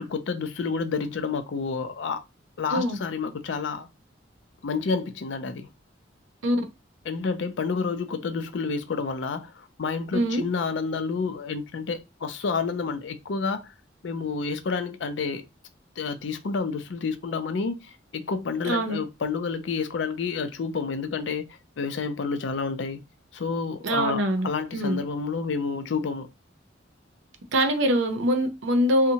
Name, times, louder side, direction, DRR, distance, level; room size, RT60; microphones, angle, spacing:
voice 1, 0.0-2.2 2.6-3.9 4.6-5.7 7.1-13.7 14.0-15.4 16.0-23.0 23.3-26.3, left 4 dB, 70° left, 0.4 m, -29 dB
voice 2, 10.1-10.4 18.6-19.0 23.8-25.0 27.5-29.1, equal, 85° right, 0.6 m, -24 dB
2.7 x 2.1 x 2.8 m
head